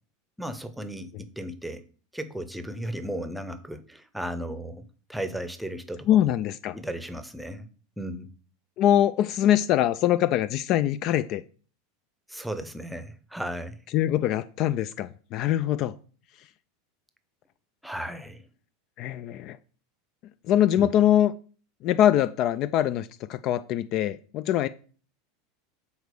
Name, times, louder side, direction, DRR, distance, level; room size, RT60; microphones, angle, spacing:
voice 1, 0.4-1.8 2.1-6.3 6.7-7.7 8.0-8.3 12.3-13.8 17.8-18.4 20.8-20.9, right 1 dB, 5° right, 0.8 m, -35 dB
voice 2, 6.1-6.7 8.8-11.4 13.9-16.0 19.0-19.6 20.5-21.3 21.8-24.7, left 11 dB, 45° left, 0.3 m, -23 dB
6.5 x 4.2 x 4.6 m
figure-of-eight pair, 80°, 0 cm